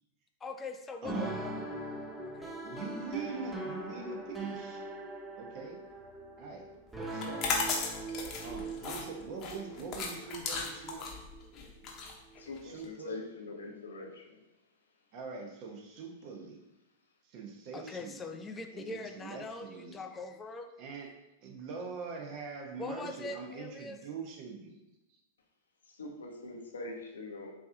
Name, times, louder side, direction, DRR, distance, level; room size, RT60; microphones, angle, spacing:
voice 1, 0.4-1.6 2.2-2.6 17.7-20.7 22.8-24.0, left 3 dB, 20° left, 6 dB, 0.4 m, -42 dB
sound 1, 1.0-12.5, right 2 dB, 10° right, 0.7 m, -41 dB
voice 2, 1.0-1.4 2.6-4.8 5.4-5.8 6.4-6.7 7.1-7.5 8.4-11.1 12.6-13.2 15.1-16.6 17.2-18.3 18.7-20.0 20.8-21.1 21.4-24.8, right 5 dB, 50° right, 1 dB, 0.9 m, -43 dB
sound 2, 7.1-12.8, left 4 dB, 40° left, 0.8 m, -36 dB
voice 3, 12.4-14.4 26.0-27.5, left 2 dB, 85° left, 1 dB, 0.7 m, -43 dB
4.4 x 2.9 x 2.7 m, 0.92 s
hypercardioid pair, 105°, 0 cm